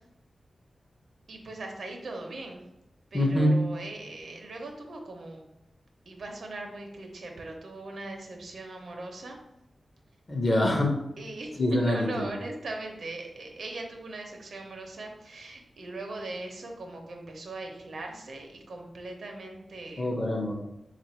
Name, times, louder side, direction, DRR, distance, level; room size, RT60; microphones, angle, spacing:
voice 1, 1.3-2.7 3.1-5.5 6.1-9.4 11.2-20.1, right 2 dB, 75° right, 2 dB, 0.7 m, -39 dB
voice 2, 3.1-3.6 10.3-11.0 11.6-12.3 20.0-20.5, left 1 dB, 30° left, 1 dB, 0.7 m, -24 dB
3.4 x 2.5 x 4.3 m, 0.85 s
wide cardioid pair, 145°, 0 cm